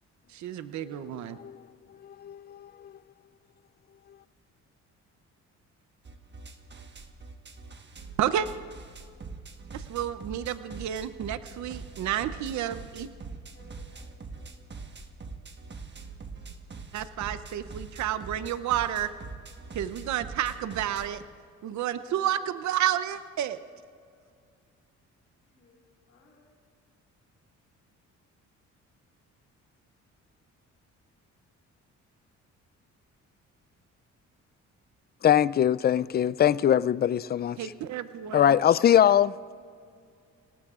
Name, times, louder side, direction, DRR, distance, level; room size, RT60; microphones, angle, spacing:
voice 1, 0.3-1.4 8.2-8.5 9.7-13.1 16.9-19.1 19.7-21.2 21.6-23.6 37.6-38.6, right 11 dB, 70° right, 0.7 m, -30 dB
voice 2, 1.1-1.6 2.0-2.9 35.2-37.6 38.3-39.3, left 10 dB, 35° left, 0.4 m, -22 dB
sound 1, 6.0-21.2, right 4 dB, 35° right, 1.3 m, -43 dB
voice 3, 13.2-14.6 25.5-26.5, left 3 dB, 60° left, 4.4 m, -60 dB
27.0 x 18.5 x 2.5 m
cardioid pair, 90°, 30 cm